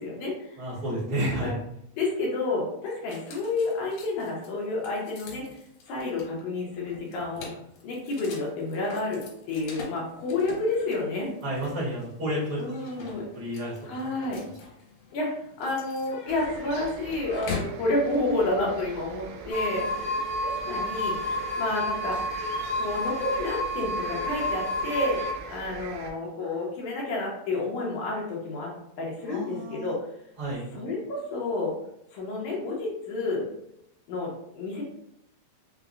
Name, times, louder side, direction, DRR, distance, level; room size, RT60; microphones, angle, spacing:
voice 1, 0.0-0.6 1.4-1.5 2.0-5.4 5.9-7.5 7.8-11.3 12.6-13.2 13.9-14.4 15.1-15.3 15.6-21.2 21.6-22.2 22.8-28.7 29.0-30.0 30.8-31.7 32.1-33.5 34.1-34.8, left 2 dB, 75° left, -3 dB, 1.9 m, -30 dB
voice 2, 0.6-1.6 11.4-12.6 13.0-14.1 14.4-14.5 29.2-29.9 30.4-30.7, equal, 60° right, -8 dB, 1.1 m, -31 dB
sound 1, 3.1-17.8, left 4 dB, 90° left, 2.7 m, -43 dB
sound 2, 16.3-26.1, right 5 dB, 85° right, 2.3 m, -42 dB
sound 3, 19.5-25.3, left 1 dB, 55° left, 1.4 m, -30 dB
5.7 x 2.0 x 2.5 m, 0.76 s
omnidirectional pair, 4.0 m